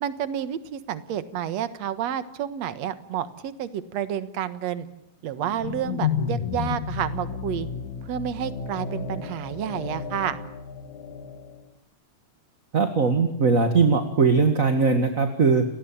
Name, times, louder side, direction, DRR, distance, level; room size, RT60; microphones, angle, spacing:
voice 1, 0.0-4.9 5.2-7.7 8.0-10.4, right 10 dB, 65° right, 13 dB, 2.6 m, -30 dB
sound 1, 5.3-11.7, left 7 dB, 80° left, 3.0 m, -32 dB
voice 2, 12.7-15.6, right 4 dB, 30° right, 8 dB, 2.0 m, -20 dB
29.5 x 20.0 x 8.8 m, 0.79 s
omnidirectional pair, 3.3 m